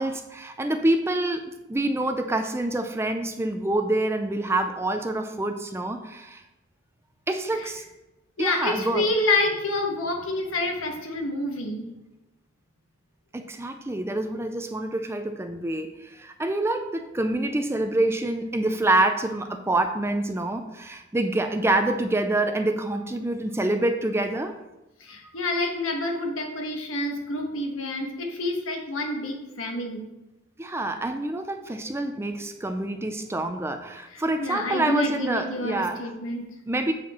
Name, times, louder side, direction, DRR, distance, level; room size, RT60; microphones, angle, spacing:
voice 1, 0.0-6.4 7.3-7.8 8.4-9.1 13.3-24.6 30.6-36.1 36.7-36.9, right 2 dB, 15° right, 7 dB, 0.4 m, -26 dB
voice 2, 8.4-11.9 25.0-30.0 34.1-36.5, left 2 dB, 85° left, 2 dB, 1.4 m, -28 dB
8.5 x 4.3 x 4.3 m, 0.98 s
head